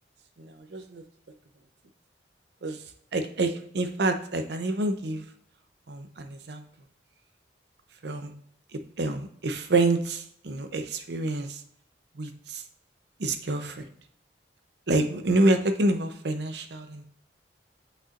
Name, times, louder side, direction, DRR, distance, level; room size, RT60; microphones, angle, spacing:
voice 1, 0.4-1.0 2.6-2.8 3.1-5.2 5.9-6.6 8.0-8.3 9.0-11.6 12.2-12.6 13.2-13.9 14.9-17.0, right 2 dB, 65° right, 8 dB, 0.7 m, -27 dB
8.6 x 5.4 x 2.5 m, 0.68 s
head